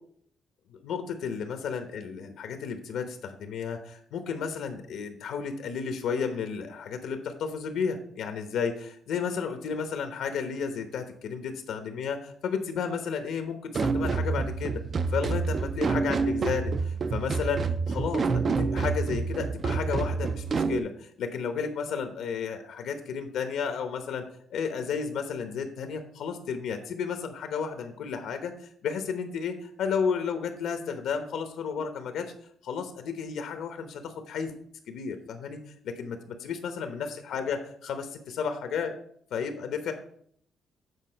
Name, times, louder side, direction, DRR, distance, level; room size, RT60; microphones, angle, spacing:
voice 1, 0.7-14.8 15.1-24.2 24.5-32.3 32.6-34.5 34.9-35.6 35.8-39.0 39.3-39.9, left 6 dB, 85° left, 7 dB, 1.0 m, -32 dB
sound 1, 13.7-20.8, right 4 dB, 35° right, 0.4 m, -28 dB
8.3 x 4.3 x 5.6 m, 0.64 s
cardioid pair, 145°, 0 cm